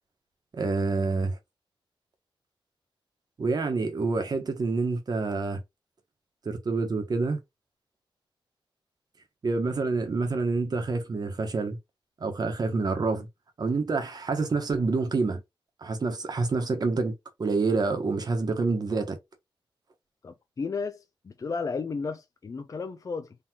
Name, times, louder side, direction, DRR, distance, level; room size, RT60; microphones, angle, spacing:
voice 1, 0.5-1.4 3.4-5.6 6.4-7.4 9.4-11.8 12.2-13.3 13.6-15.4 15.8-17.1 17.4-19.2, right 3 dB, 45° right, 1.3 m, -27 dB
voice 2, 20.2-23.4, left 4 dB, 40° left, 0.5 m, -33 dB
3.9 x 3.6 x 2.9 m
wide cardioid pair, 165°, 9 cm